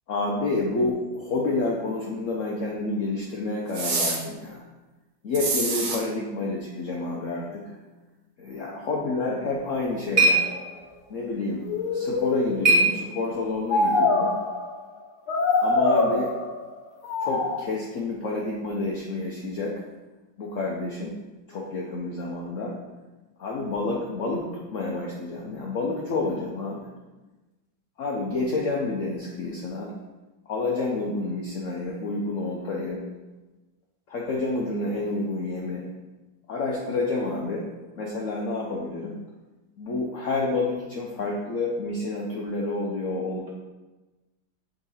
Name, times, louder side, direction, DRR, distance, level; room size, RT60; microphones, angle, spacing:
voice 1, 0.1-4.6 5.2-7.8 8.4-10.5 11.1-11.6 11.9-14.3 15.6-16.3 17.2-19.8 20.4-21.1 21.5-22.7 23.4-26.9 28.0-29.9 30.5-33.0 34.1-35.8 36.5-37.6 37.9-39.1 39.8-43.5, left 3 dB, 75° left, -2 dB, 0.7 m, -29 dB
sound 1, 3.7-4.2 5.3-6.0, right 3 dB, 55° right, 1.3 m, -26 dB
sound 2, 9.4-13.6, right 2 dB, 25° right, 1.7 m, -26 dB
sound 3, 10.4-10.6 11.5-12.8 13.7-14.7 15.3-16.6 17.0-17.6, left 3 dB, 90° left, 1.8 m, -24 dB
6.2 x 4.0 x 4.1 m, 1.1 s
omnidirectional pair, 2.2 m